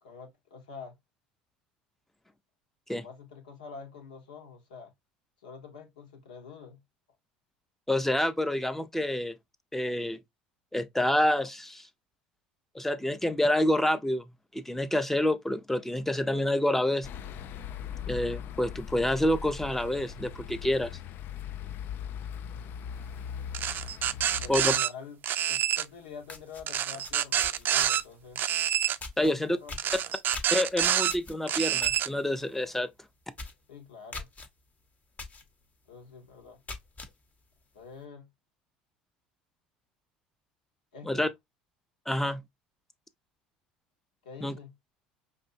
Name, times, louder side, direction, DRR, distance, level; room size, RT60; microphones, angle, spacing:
voice 1, 0.0-1.0 2.9-4.9 5.4-6.8 24.4-25.2 25.4-28.4 29.2-29.9 33.7-34.3 35.9-36.6 37.7-38.3 40.9-41.3 44.2-44.7, left 5 dB, 80° left, 1.3 m, -46 dB
voice 2, 7.9-9.3 9.7-10.2 10.7-11.9 12.7-14.2 14.5-17.1 18.1-21.0 24.5-24.8 29.2-29.6 30.5-32.9 41.1-41.3 42.1-42.4 44.4-44.6, left 1 dB, 5° left, 0.6 m, -27 dB
sound 1, 17.0-24.8, left 8 dB, 50° left, 0.4 m, -39 dB
sound 2, 23.5-24.9 25.2-25.8 26.7-28.0 28.3-29.0 29.8-31.1 31.5-32.1, right 10 dB, 45° right, 0.4 m, -27 dB
sound 3, 25.8-25.9 26.2-28.2 29.0-29.3 29.7-32.0 32.4-32.6 32.9-33.0 33.3-33.6 34.1-34.5 35.2-35.4 35.9-36.0 36.5-37.1, left 3 dB, 35° left, 1.0 m, -42 dB
5.3 x 2.7 x 2.6 m
hypercardioid pair, 70°, 5 cm